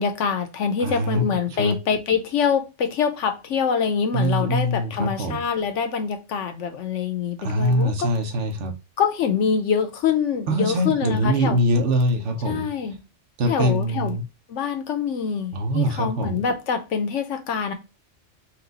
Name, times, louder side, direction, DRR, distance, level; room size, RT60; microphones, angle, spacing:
voice 1, 0.0-8.1 9.0-11.6 12.4-13.0 13.5-14.2 14.5-17.7, left 6 dB, 75° left, 1.0 m, -25 dB
voice 2, 0.8-1.2 1.6-1.7 4.1-5.4 7.4-8.7 10.5-12.7 13.4-14.2 15.5-16.4, equal, 70° right, 1.2 m, -23 dB
4.3 x 2.3 x 3.9 m
omnidirectional pair, 1.3 m